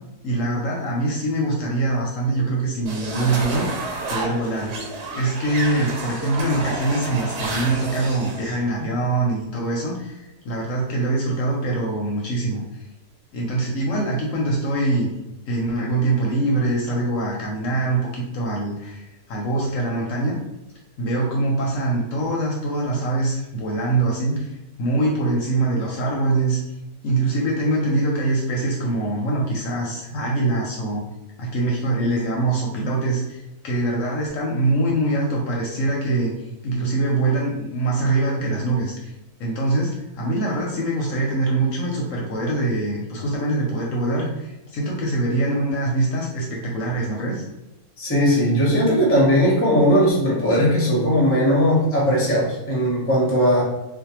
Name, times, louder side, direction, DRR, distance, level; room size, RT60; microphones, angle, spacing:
voice 1, 0.2-4.7 5.1-12.8 13.3-15.1 15.5-20.4 21.0-24.5 24.8-26.6 27.0-31.0 31.4-36.3 36.6-39.1 39.4-47.4, right 2 dB, 70° left, -2 dB, 0.8 m, -23 dB
sound 1, 2.9-8.6, right 3 dB, 85° right, 1.2 m, -30 dB
voice 2, 48.0-53.6, equal, 15° left, -5 dB, 0.4 m, -18 dB
2.5 x 2.1 x 2.9 m, 0.96 s
omnidirectional pair, 1.6 m